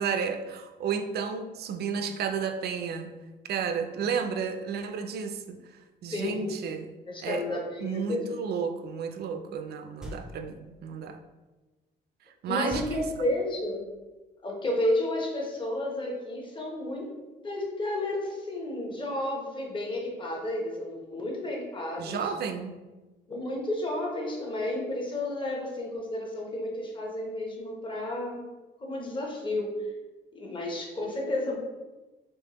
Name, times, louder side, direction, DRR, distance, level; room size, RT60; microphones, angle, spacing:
voice 1, 0.0-3.1 3.5-6.9 7.2-7.4 7.8-11.2 12.4-13.1 22.0-22.8, right 6 dB, 60° right, 7 dB, 0.4 m, -32 dB
voice 2, 6.1-6.5 7.1-8.2 12.5-13.8 14.4-17.2 17.4-22.3 23.3-28.4 28.8-29.7 30.3-31.6, left 1 dB, 25° left, 0 dB, 0.8 m, -32 dB
sound 1, 10.0-10.7 12.7-13.7, left 1 dB, 5° right, 0.5 m, -42 dB
3.5 x 3.0 x 2.9 m, 1.2 s
cardioid pair, 115°, 19 cm